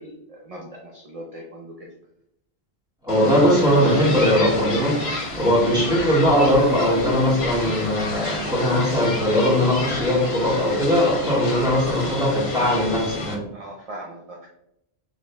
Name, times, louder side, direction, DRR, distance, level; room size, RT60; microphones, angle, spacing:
voice 1, 0.0-1.9 5.4-5.5 13.5-14.5, right 1 dB, 40° right, 0 dB, 0.6 m, -39 dB
voice 2, 3.0-13.4, equal, 5° right, -6 dB, 1.6 m, -20 dB
sound 1, 3.1-13.3, left 2 dB, 75° left, 1.3 m, -30 dB
5.0 x 3.7 x 2.3 m, 0.80 s
omnidirectional pair, 1.1 m